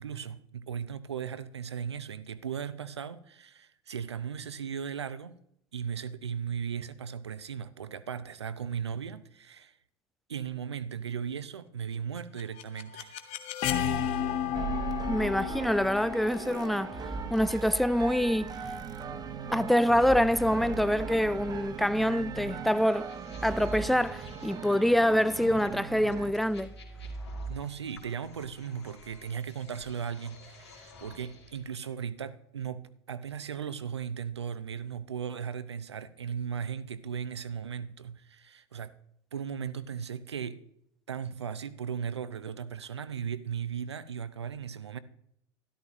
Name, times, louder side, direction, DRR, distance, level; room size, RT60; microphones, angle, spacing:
voice 1, 0.0-5.4 5.7-9.7 10.3-13.2 27.5-38.9 39.3-40.6 41.1-45.0, right 7 dB, 75° right, 0.7 m, -37 dB
sound 1, 12.2-18.0, left 9 dB, 45° left, 1.2 m, -33 dB
sound 2, 14.5-26.3, right 6 dB, 25° right, 1.1 m, -38 dB
voice 2, 15.1-17.0 17.3-18.5 19.5-23.1 23.4-26.7, equal, ahead, 0.4 m, -26 dB
sound 3, 22.8-31.6, right 2 dB, 75° left, 2.8 m, -45 dB
12.5 x 12.5 x 3.0 m
figure-of-eight pair, 75°, 14 cm